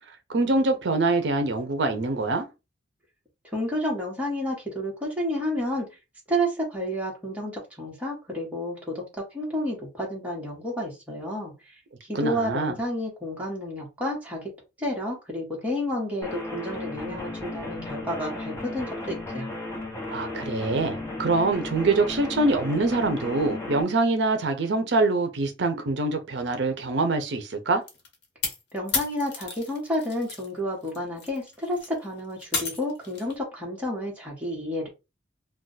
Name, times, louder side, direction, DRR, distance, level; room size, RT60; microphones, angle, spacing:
voice 1, 0.3-2.5 12.1-12.8 20.1-27.8, right 3 dB, 70° right, 0.5 m, -24 dB
voice 2, 3.5-5.9 6.3-9.0 9.3-11.5 12.0-14.5 14.8-19.5 28.7-34.9, equal, 10° right, 1.2 m, -30 dB
sound 1, 16.2-23.8, left 2 dB, 15° left, 0.7 m, -35 dB
sound 2, 27.9-30.5 30.8-33.3, left 4 dB, 65° left, 1.0 m, -33 dB
2.4 x 2.3 x 3.9 m
head